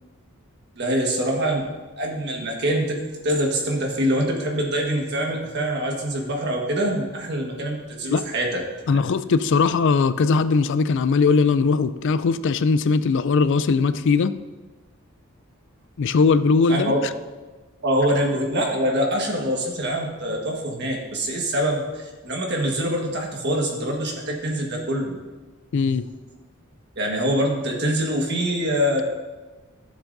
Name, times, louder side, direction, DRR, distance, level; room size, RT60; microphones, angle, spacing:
voice 1, 0.8-1.7 2.0-3.0 3.2-8.6 8.9-9.0 16.7-17.0 17.8-25.1 27.0-29.0, equal, 50° right, 0 dB, 1.5 m, -24 dB
voice 2, 8.9-14.4 16.0-16.9 25.7-26.1, left 4 dB, 55° left, 14 dB, 0.4 m, -20 dB
14.0 x 7.2 x 2.6 m, 1.2 s
head